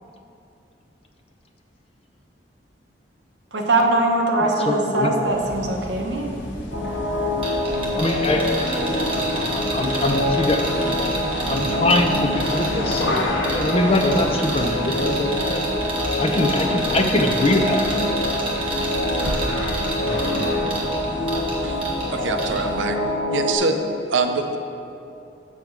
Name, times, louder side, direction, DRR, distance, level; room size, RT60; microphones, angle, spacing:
voice 1, 3.5-6.3, right 2 dB, 75° right, 0 dB, 1.1 m, -21 dB
voice 2, 4.4-5.1 8.0-8.8 9.3-10.7 11.5-13.0 13.5-15.6 16.2-17.9 20.0-20.5, left 1 dB, 30° left, 4 dB, 0.6 m, -23 dB
sound 1, 5.2-23.0, left 1 dB, 85° left, 1.0 m, -32 dB
sound 2, 6.7-23.5, left 1 dB, 60° left, 0.9 m, -26 dB
sound 3, 7.4-22.1 22.4-22.6, right 2 dB, 30° right, 1.5 m, -30 dB
voice 3, 22.1-23.0 23.3-23.8 24.1-24.6, right 4 dB, 90° right, 6 dB, 0.6 m, -24 dB
7.4 x 7.0 x 4.7 m, 2.8 s
head